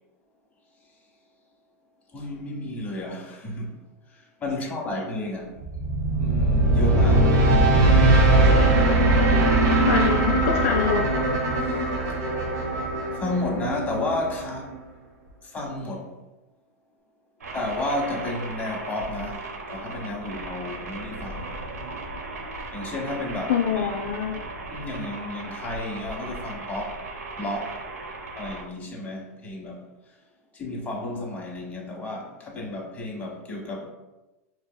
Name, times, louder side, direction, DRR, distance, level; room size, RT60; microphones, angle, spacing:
voice 1, 2.1-3.8 4.1-5.9 6.2-7.4 9.7-9.8 11.6-11.8 13.1-14.8 15.4-16.2 17.5-21.5 22.7-23.9 24.7-27.0 27.4-27.8 28.4-29.9 30.5-33.9, left 2 dB, 20° left, 1.0 m, -32 dB
sound 1, 5.6-14.7, right 2 dB, 40° right, 1.0 m, -20 dB
voice 2, 9.9-11.1 23.5-24.4, left 7 dB, 60° left, 0.4 m, -25 dB
sound 2, 17.4-28.6, right 2 dB, 85° right, 0.6 m, -37 dB
4.6 x 2.9 x 2.2 m
hypercardioid pair, 105°, 8 cm